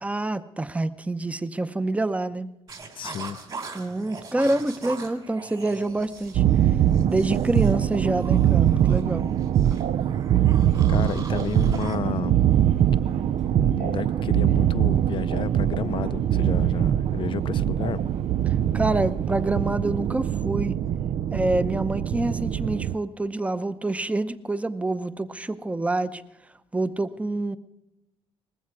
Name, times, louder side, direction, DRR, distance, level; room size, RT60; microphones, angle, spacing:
voice 1, 0.0-2.5 3.7-6.4 7.1-9.3 18.7-20.8 21.3-26.2 26.7-27.6, right 2 dB, 10° right, 0.7 m, -27 dB
sound 1, 2.7-12.0, right 4 dB, 45° right, 3.1 m, -42 dB
voice 2, 3.0-3.4 10.4-12.4 13.5-18.0, left 8 dB, 50° left, 0.5 m, -32 dB
Subway metro underground, 5.7-20.1, right 4 dB, 85° right, 3.6 m, -46 dB
sound 2, 6.3-22.9, right 10 dB, 65° right, 0.4 m, -23 dB
19.5 x 15.0 x 4.7 m
cardioid pair, 90°, 11 cm